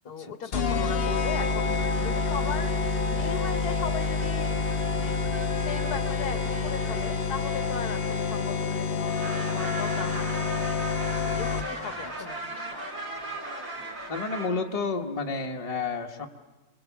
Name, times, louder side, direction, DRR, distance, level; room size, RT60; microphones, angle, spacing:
voice 1, 0.0-4.6 4.9-5.2 5.6-10.5 11.2-12.9, left 6 dB, 80° left, 10 dB, 1.7 m, -38 dB
sound 1, 0.5-11.9, left 4 dB, 45° left, 1.1 m, -28 dB
sound 2, 1.7-8.7 9.0-14.5, right 2 dB, 55° right, 2.9 m, -39 dB
sound 3, 1.8-1.9 2.3-3.3 3.7-4.8 5.1-7.2, right 5 dB, 80° right, 3.3 m, -45 dB
voice 2, 14.1-16.3, left 4 dB, 25° left, 3 dB, 1.2 m, -30 dB
27.5 x 20.5 x 7.2 m, 1.2 s
omnidirectional pair, 1.6 m